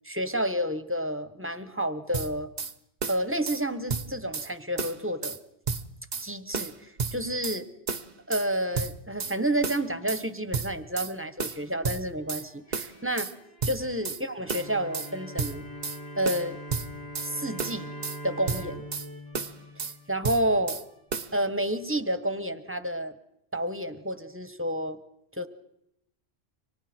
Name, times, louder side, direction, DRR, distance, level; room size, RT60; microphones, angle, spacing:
voice 1, 0.0-2.5 3.1-5.4 6.2-7.7 8.3-13.3 13.7-15.6 16.2-16.6 17.2-17.9 18.2-18.8 19.8-20.8 21.3-23.2 23.5-25.0 25.3-25.5, right 1 dB, 10° right, 11 dB, 1.3 m, -30 dB
sound 1, 2.1-2.7 3.0-3.6 3.9-4.5 4.8-5.4 5.7-6.3 6.5-7.6 7.9-8.5 8.7-9.4 9.6-10.2 10.5-11.1 11.4-12.4 12.7-13.3 13.6-14.2 14.5-15.1 15.4-16.0 16.2-17.3 17.6-18.2 18.5-19.1 19.3-19.9 20.2-20.8 21.1-21.3, right 5 dB, 45° right, 1.0 m, -32 dB
sound 2, 12.0-22.6, equal, 70° left, 4.7 m, -56 dB
Bowed string instrument, 14.4-20.6, equal, 35° left, 1.9 m, -42 dB
30.0 x 25.0 x 4.5 m, 0.79 s
omnidirectional pair, 1.1 m